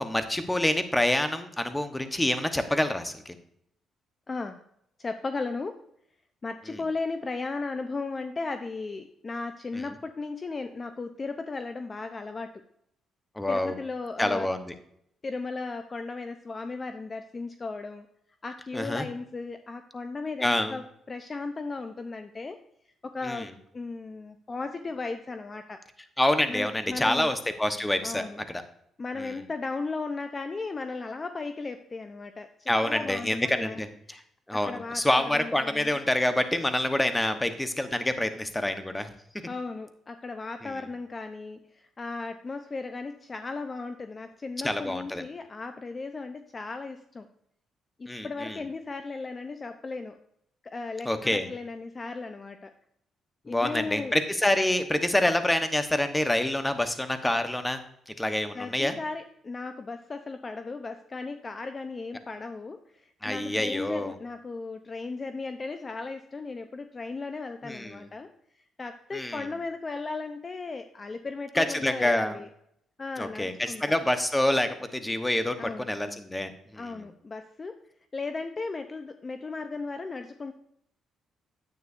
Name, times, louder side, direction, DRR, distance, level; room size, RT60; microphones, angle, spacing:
voice 1, 0.0-3.3 13.4-13.7 14.2-14.6 18.7-19.0 20.4-20.7 23.2-23.5 26.2-28.6 29.2-29.3 32.7-34.2 34.5-39.1 40.6-40.7 44.6-45.2 48.1-48.6 51.0-51.5 53.5-57.8 58.1-59.0 63.2-64.1 67.6-68.1 69.1-69.4 71.5-72.4 73.2-76.9, left 1 dB, 10° left, 9 dB, 1.1 m, -27 dB
voice 2, 4.3-4.6 5.0-5.8 6.4-12.5 13.5-14.5 15.2-18.1 18.4-22.6 23.0-25.8 26.5-27.3 28.0-28.4 29.0-33.8 34.5-36.0 37.2-37.4 39.5-47.3 48.0-50.2 50.6-52.7 53.4-54.2 58.5-68.3 68.8-72.5 73.0-74.0 75.6-75.9 76.8-77.8 78.1-80.5, left 3 dB, 30° left, 8 dB, 0.6 m, -36 dB
9.8 x 8.8 x 2.6 m, 0.72 s
cardioid pair, 90°, 0 cm